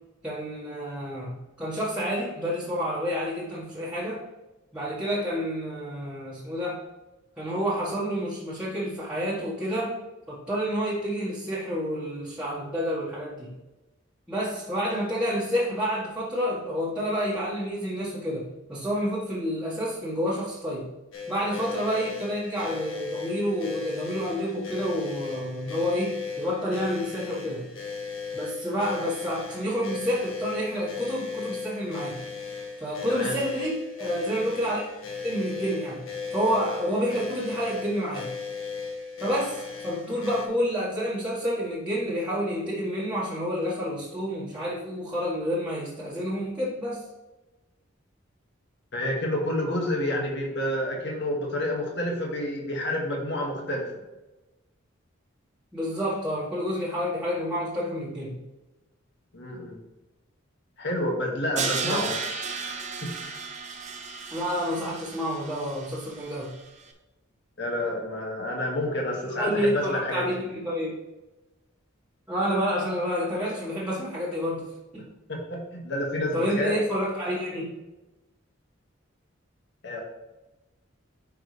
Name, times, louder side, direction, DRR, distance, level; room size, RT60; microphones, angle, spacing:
voice 1, 0.2-4.2 4.7-6.8 7.4-10.0 10.3-13.5 14.3-20.9 21.3-27.7 28.3-32.2 32.8-34.8 35.2-36.0 36.3-38.3 39.2-47.0 55.7-58.4 61.8-62.1 64.3-66.5 69.4-71.0 72.3-74.7 74.9-75.1 76.3-77.7, equal, 5° right, -9 dB, 1.6 m, -29 dB
sound 1, 21.1-40.5, left 5 dB, 80° left, 1.5 m, -36 dB
voice 2, 48.9-53.9 59.3-59.8 60.8-62.2 63.0-63.1 67.6-70.2 75.3-76.7 79.8-80.0, left 1 dB, 60° left, 0 dB, 2.0 m, -29 dB
Crash cymbal, 61.6-66.6, right 5 dB, 35° right, 0.8 m, -34 dB
9.2 x 5.4 x 3.3 m, 1.1 s
head